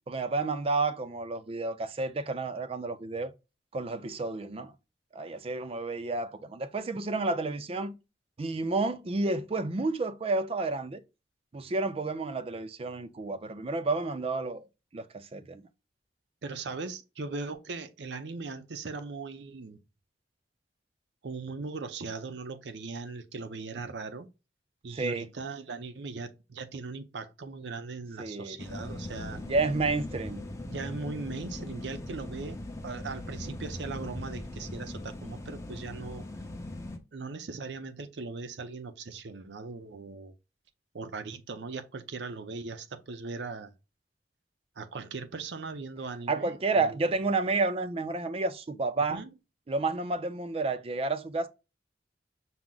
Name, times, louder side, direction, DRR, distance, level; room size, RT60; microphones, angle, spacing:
voice 1, 0.1-3.3 3.7-4.7 5.1-7.9 8.4-11.0 11.5-14.7 14.9-15.6 24.9-25.3 28.2-28.6 29.5-30.4 46.3-49.2 49.7-51.5, right 3 dB, 35° right, 0.4 m, -30 dB
voice 2, 16.4-19.8 21.2-24.3 24.8-29.4 30.7-36.3 37.1-40.3 40.9-43.7 44.8-47.0 49.1-49.3, right 4 dB, 80° right, 0.6 m, -39 dB
sound 1, 28.6-37.0, left 1 dB, 15° left, 0.6 m, -40 dB
5.9 x 2.1 x 3.7 m
head